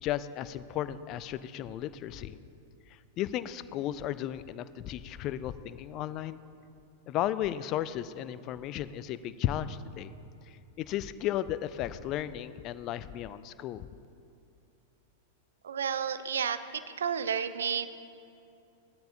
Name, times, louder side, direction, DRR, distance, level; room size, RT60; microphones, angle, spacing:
voice 1, 0.0-2.4 3.2-6.4 7.1-10.1 10.8-13.8, left 12 dB, 35° left, 15 dB, 0.4 m, -34 dB
voice 2, 15.6-17.9, right 7 dB, 65° right, 12 dB, 0.6 m, -31 dB
18.5 x 13.0 x 2.8 m, 2.6 s
figure-of-eight pair, 95°, 0 cm